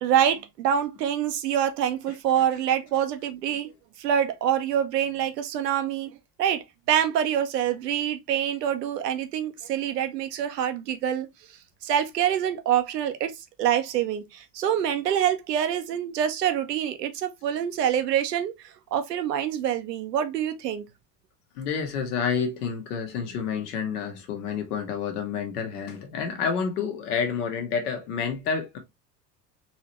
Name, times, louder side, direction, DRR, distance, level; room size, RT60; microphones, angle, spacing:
voice 1, 0.0-3.7 4.0-6.1 6.4-11.3 11.8-20.8, right 9 dB, 75° right, 0.8 m, -26 dB
voice 2, 21.6-28.8, left 6 dB, 65° left, 1.2 m, -29 dB
4.0 x 2.9 x 2.9 m
figure-of-eight pair, 70°, 49 cm